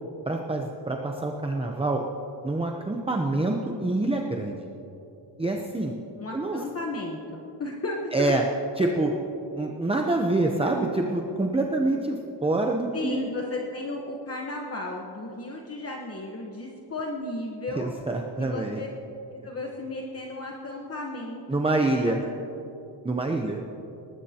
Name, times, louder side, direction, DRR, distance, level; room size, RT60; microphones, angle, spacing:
voice 1, 0.3-2.0 2.4-4.6 5.4-6.0 6.3-6.6 8.1-8.4 8.8-9.1 9.5-12.2 12.4-13.3 17.8-18.8 21.5-22.2 23.0-23.6, right 2 dB, 15° right, 1 dB, 0.7 m, -26 dB
voice 2, 6.2-8.3 12.9-17.9 18.4-18.9 19.3-22.1, left 2 dB, 35° left, -1 dB, 1.2 m, -34 dB
22.5 x 19.5 x 2.9 m, 3.0 s
wide cardioid pair, 155°, 44 cm